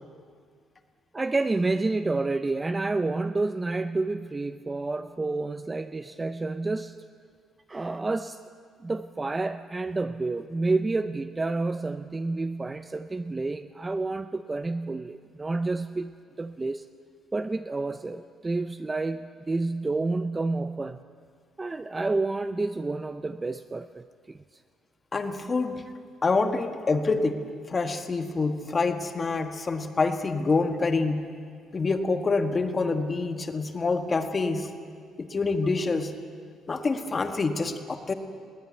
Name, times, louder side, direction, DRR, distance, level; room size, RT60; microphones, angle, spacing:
voice 1, 1.1-7.0 7.7-8.4 8.8-16.9 17.3-21.0 21.6-24.4, right 3 dB, 15° right, 11 dB, 0.5 m, -29 dB
voice 2, 25.1-25.8 26.2-27.4 27.7-31.2 31.7-34.7 35.2-36.1 36.7-38.1, left 3 dB, 25° left, 7 dB, 1.4 m, -26 dB
21.0 x 18.0 x 9.3 m, 2.1 s
cardioid pair, 155°, 0 cm